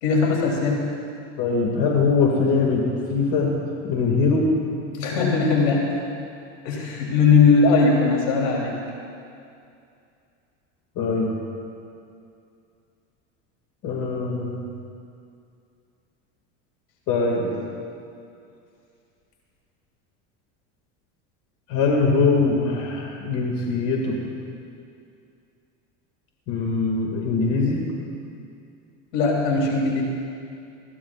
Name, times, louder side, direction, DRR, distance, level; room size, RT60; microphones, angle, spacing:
voice 1, 0.0-0.9 5.0-6.0 6.6-8.8 29.1-30.0, left 4 dB, 85° left, -2 dB, 3.2 m, -19 dB
voice 2, 1.4-2.8 3.1-3.5 3.8-4.4 11.0-11.3 13.8-14.7 17.1-17.5 21.7-24.2 26.5-27.8, left 4 dB, 55° left, -1 dB, 2.1 m, -22 dB
21.0 x 15.5 x 2.4 m, 2.5 s
supercardioid pair, 125°, 35 cm